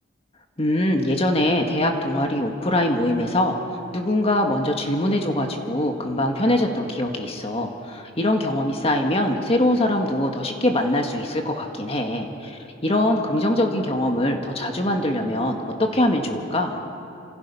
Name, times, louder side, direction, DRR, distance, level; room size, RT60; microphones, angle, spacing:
voice 1, 0.6-3.6 3.9-16.8, left 1 dB, 30° left, 3 dB, 1.8 m, -23 dB
28.0 x 27.0 x 5.7 m, 2.7 s
head